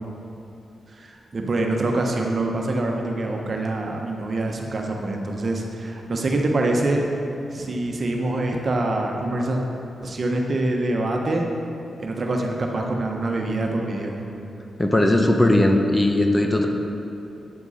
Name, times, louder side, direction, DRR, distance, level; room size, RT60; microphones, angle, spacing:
voice 1, 0.9-7.0 7.5-9.6 10.0-11.5 12.0-14.2, right 2 dB, 55° right, 1 dB, 1.2 m, -25 dB
voice 2, 14.8-16.7, left 1 dB, 20° left, 3 dB, 1.0 m, -18 dB
9.7 x 7.1 x 4.2 m, 2.8 s
supercardioid pair, 50°, 0 cm